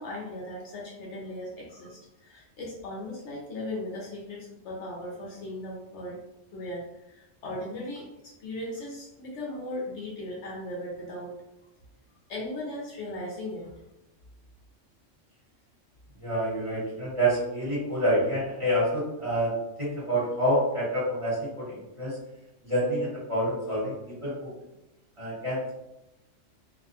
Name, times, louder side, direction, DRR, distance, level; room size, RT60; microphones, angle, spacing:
voice 1, 0.0-6.2 6.5-8.1 8.4-11.3 12.3-13.7, left 1 dB, 70° left, -3 dB, 0.9 m, -37 dB
voice 2, 16.2-19.5 19.8-22.2 22.6-24.5 25.2-25.7, equal, 25° right, -9 dB, 1.2 m, -27 dB
2.5 x 2.1 x 2.7 m, 0.91 s
omnidirectional pair, 1.3 m